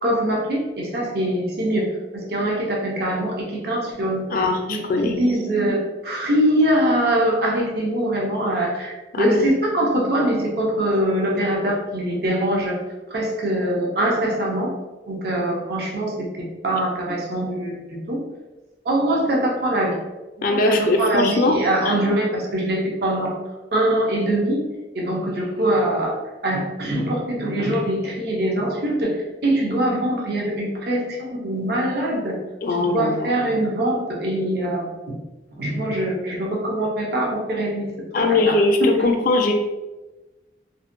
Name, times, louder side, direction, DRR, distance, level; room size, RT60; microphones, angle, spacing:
voice 1, 0.0-4.3 4.7-12.8 13.1-14.7 15.1-16.3 16.6-18.2 18.8-20.0 20.5-23.3 23.7-24.6 24.9-26.2 26.4-32.4 32.8-35.2 35.6-38.5 38.8-39.1, right 1 dB, 60° right, -2 dB, 0.5 m, -23 dB
voice 2, 4.3-5.1 9.1-9.5 20.4-21.6 21.9-22.0 32.6-33.3 38.1-39.5, left 2 dB, 50° left, 3 dB, 0.3 m, -20 dB
2.5 x 2.1 x 2.5 m, 1.1 s
head